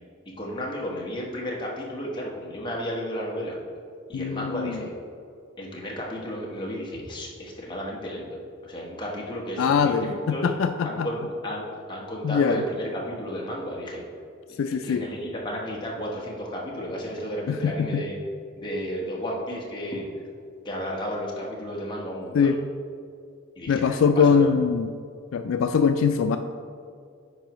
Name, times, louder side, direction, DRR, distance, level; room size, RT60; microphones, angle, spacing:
voice 1, 0.4-3.6 4.1-4.9 5.6-10.5 10.8-14.0 14.5-18.2 18.5-20.0 20.6-22.6 23.6-24.0 24.3-24.5, equal, 25° left, -3 dB, 1.2 m, -33 dB
voice 2, 4.1-4.8 9.6-10.1 10.4-11.1 12.2-12.6 14.6-15.0 17.5-18.0 22.3-22.5 23.7-24.9 25.3-26.4, left 6 dB, 75° left, 8 dB, 0.3 m, -22 dB
9.1 x 4.8 x 3.1 m, 2.3 s
head